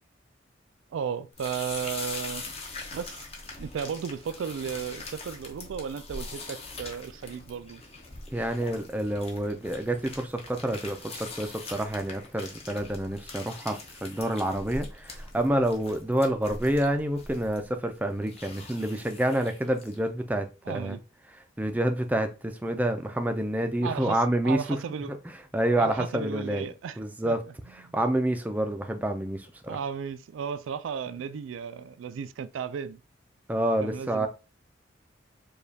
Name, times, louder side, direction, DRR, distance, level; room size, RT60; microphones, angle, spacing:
voice 1, 0.9-2.4 2.9-3.2 3.6-7.8 20.7-21.0 23.8-25.1 25.7-27.0 27.2-27.4 27.8-27.9 29.7-33.0 33.8-34.3, right 7 dB, 85° right, 0.3 m, -34 dB
sound 1, 1.3-20.1, left 3 dB, 30° left, 0.7 m, -42 dB
voice 2, 8.3-21.0 21.6-24.8 25.1-25.2 25.5-26.7 27.0-27.4 27.9-29.8 33.5-34.3, right 1 dB, 10° right, 0.4 m, -28 dB
5.0 x 2.3 x 2.7 m
head